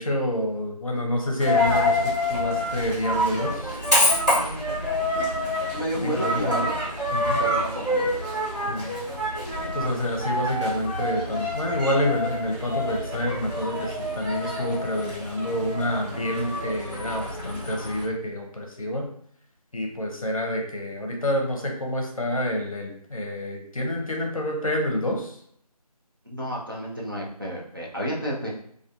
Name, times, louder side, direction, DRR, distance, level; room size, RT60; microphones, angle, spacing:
voice 1, 0.0-3.8 5.9-6.7 7.1-7.4 8.7-9.0 9.6-19.1 19.7-25.3, left 1 dB, 60° left, 1 dB, 0.7 m, -28 dB
Coin (dropping), 1.4-18.0, left 1 dB, 10° right, 0.7 m, -27 dB
voice 2, 5.7-6.8 7.4-8.1 26.2-28.5, equal, 35° right, -4 dB, 0.4 m, -30 dB
2.4 x 2.4 x 2.3 m, 0.65 s
figure-of-eight pair, 170°, 20 cm